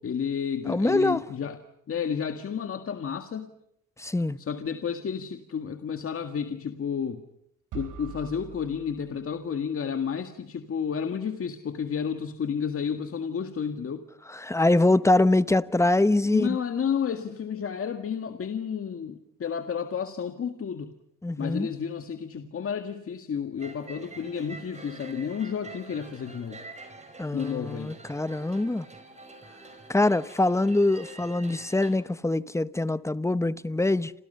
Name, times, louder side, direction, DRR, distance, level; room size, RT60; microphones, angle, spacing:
voice 1, 0.0-1.6 1.9-3.5 4.4-7.2 7.7-14.0 16.3-20.9 21.4-26.6 27.3-27.9, left 7 dB, 45° left, 1.8 m, -31 dB
voice 2, 0.6-1.2 4.0-4.4 14.3-16.5 21.2-21.7 27.2-28.9 29.9-34.1, left 2 dB, 10° left, 0.9 m, -24 dB
sound 1, 7.7-9.7, right 10 dB, 90° right, 3.7 m, -43 dB
sound 2, 23.6-31.9, right 2 dB, 20° right, 5.9 m, -46 dB
29.0 x 28.0 x 5.6 m
cardioid pair, 90°, 30 cm